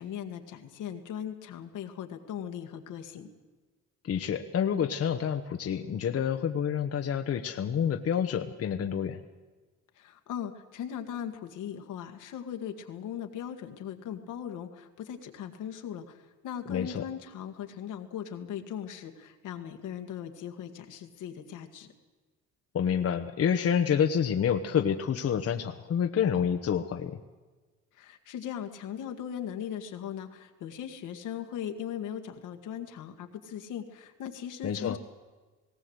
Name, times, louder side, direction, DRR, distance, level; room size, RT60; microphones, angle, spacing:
voice 1, 0.0-3.3 10.0-21.9 27.9-35.0, left 9 dB, 85° left, 5 dB, 1.9 m, -39 dB
voice 2, 4.0-9.2 16.7-17.0 22.7-27.2 34.6-35.0, left 8 dB, 50° left, 6 dB, 1.1 m, -28 dB
18.5 x 18.0 x 8.1 m, 1.3 s
cardioid pair, 90°, 30 cm